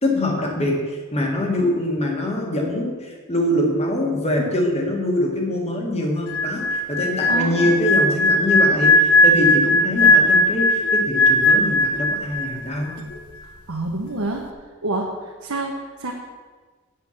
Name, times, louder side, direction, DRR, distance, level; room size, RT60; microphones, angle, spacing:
voice 1, 0.0-12.9, left 1 dB, 30° left, 0 dB, 2.0 m, -23 dB
sound 1, 6.3-12.6 12.9-13.2, left 1 dB, 75° left, 1.0 m, -18 dB
voice 2, 7.3-7.7 13.7-14.4 14.8-16.1, right 2 dB, 75° right, -1 dB, 1.2 m, -27 dB
8.3 x 7.7 x 7.1 m, 1.4 s
head